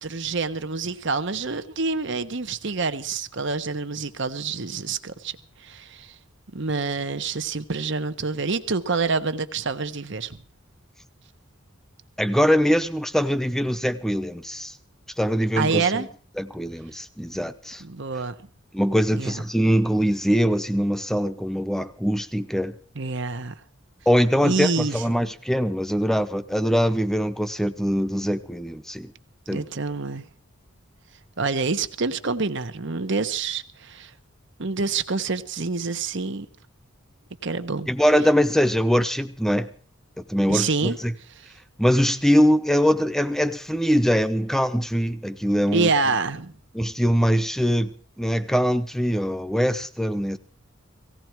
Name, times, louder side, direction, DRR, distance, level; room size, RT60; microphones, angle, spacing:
voice 1, 0.0-5.3 5.6-6.1 6.5-10.4 15.5-16.1 17.8-18.3 19.1-19.4 22.9-23.5 24.4-25.0 29.5-30.3 31.4-34.1 34.6-36.5 37.4-37.9 40.5-41.0 45.7-46.5, right 4 dB, 60° right, 10 dB, 1.1 m, -27 dB
voice 2, 12.2-14.8 15.2-16.1 16.4-17.8 18.7-22.8 24.1-29.1 29.5-29.6 37.9-39.7 40.2-41.1 41.8-45.9 46.7-50.4, equal, ahead, 11 dB, 0.8 m, -22 dB
18.0 x 17.0 x 4.6 m, 0.43 s
head